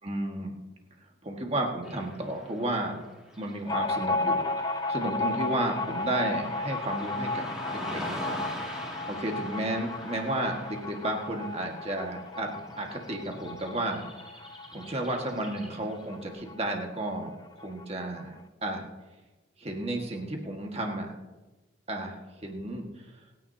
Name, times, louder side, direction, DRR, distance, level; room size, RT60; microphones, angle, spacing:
voice 1, 0.0-0.5 1.2-2.9 3.4-8.4 8.8-14.0 14.7-18.8 19.6-21.1 21.9-22.8, right 1 dB, 30° right, 2 dB, 1.7 m, -33 dB
Car passing by / Traffic noise roadway noise, 1.8-16.1, left 1 dB, 5° right, 2.3 m, -43 dB
sound 1, 3.7-16.8 17.1-17.2 17.5-18.2, left 2 dB, 20° left, 0.6 m, -34 dB
27.0 x 9.6 x 2.8 m, 1.1 s
head